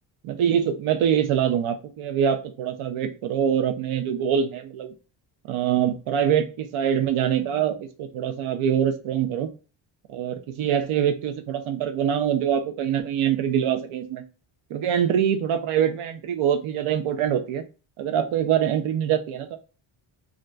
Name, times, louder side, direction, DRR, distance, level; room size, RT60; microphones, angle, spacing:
voice 1, 0.2-4.9 5.5-9.5 10.1-14.2 14.7-17.6 18.0-19.6, right 9 dB, 75° right, 7 dB, 0.6 m, -24 dB
2.5 x 2.2 x 3.8 m, 0.33 s
cardioid pair, 105°, 49 cm